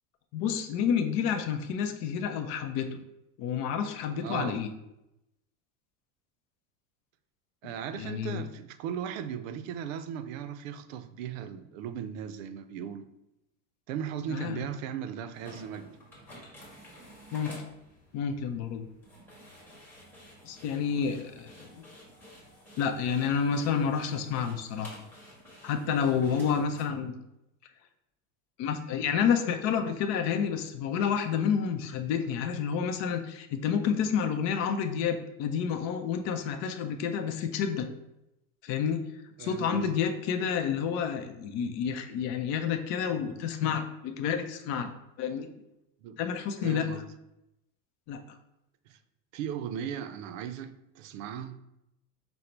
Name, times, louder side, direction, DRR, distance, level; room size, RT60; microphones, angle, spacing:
voice 1, 0.3-3.0 3.4-4.7 7.6-7.7 8.0-8.4 14.3-14.6 17.3-17.5 18.1-18.9 20.4-21.8 22.8-25.0 25.6-27.1 28.6-37.9 38.6-39.0 39.4-44.9 45.2-45.5 46.2-46.9 48.1-48.2, left 7 dB, 45° left, 0.5 m, -29 dB
voice 2, 4.2-4.6 7.6-13.1 13.9-16.0 26.3-26.6 39.4-39.9 46.0-46.2 46.6-47.1 48.9-49.0 49.3-51.6, right 8 dB, 85° right, 0.5 m, -37 dB
sound 1, 15.3-26.8, equal, 5° left, 1.1 m, -51 dB
5.2 x 2.0 x 4.3 m
supercardioid pair, 155°, 38 cm